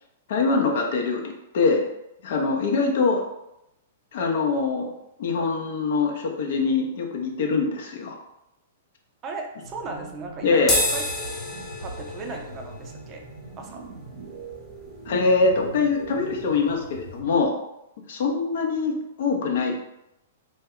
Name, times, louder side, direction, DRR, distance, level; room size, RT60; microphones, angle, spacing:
voice 1, 0.3-1.9 2.2-3.2 4.1-4.9 5.2-8.2 10.4-10.7 15.1-17.5 18.1-19.7, left 4 dB, 65° left, 2 dB, 0.5 m, -23 dB
voice 2, 9.2-11.0 11.8-13.3 13.6-13.8, right 3 dB, 30° right, 2 dB, 0.5 m, -36 dB
sound 1, 9.6-17.5, right 4 dB, 80° right, 0.5 m, -42 dB
sound 2, 10.6-17.2, left 1 dB, 15° left, 0.7 m, -32 dB
2.2 x 2.1 x 3.6 m, 0.86 s
hypercardioid pair, 125°, 0 cm